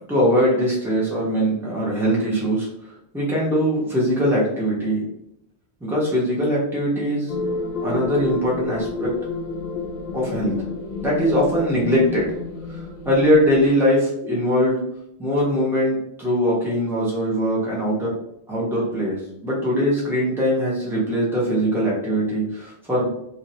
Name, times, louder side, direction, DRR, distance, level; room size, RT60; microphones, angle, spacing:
voice 1, 0.1-2.7 3.1-5.0 5.8-7.3 7.8-9.1 10.1-10.5 11.0-12.4 12.7-14.8 15.2-18.1 18.5-23.1, equal, ahead, -5 dB, 0.9 m, -21 dB
sound 1, 7.3-13.7, left 3 dB, 55° left, 0.5 m, -30 dB
3.1 x 2.8 x 2.7 m, 0.79 s
omnidirectional pair, 1.1 m